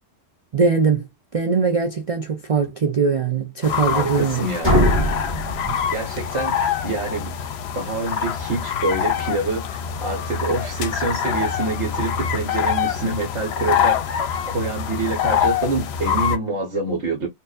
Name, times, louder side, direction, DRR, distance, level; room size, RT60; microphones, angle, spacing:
voice 1, 0.5-4.5 4.8-4.9 5.7-5.8, right 5 dB, 55° right, 0.4 m, -21 dB
sound 1, 3.6-16.4, left 8 dB, 65° left, 0.8 m, -25 dB
voice 2, 3.9-4.7 5.9-7.3 7.7-17.3, right 3 dB, 70° right, 1.5 m, -26 dB
sound 2, 4.6-6.5, left 1 dB, 10° right, 1.6 m, -21 dB
4.5 x 2.6 x 2.5 m
omnidirectional pair, 1.3 m